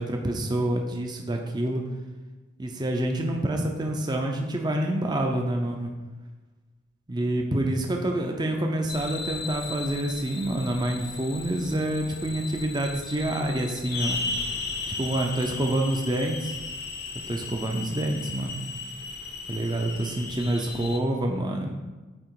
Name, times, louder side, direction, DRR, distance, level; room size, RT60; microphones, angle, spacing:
voice 1, 0.0-1.8 2.6-5.9 7.1-14.2 14.9-16.6 17.3-18.6 19.5-21.7, right 1 dB, 20° right, 2 dB, 0.5 m, -27 dB
sound 1, 8.9-21.0, left 4 dB, 50° left, 0.7 m, -36 dB
8.7 x 3.0 x 4.6 m, 1.2 s
head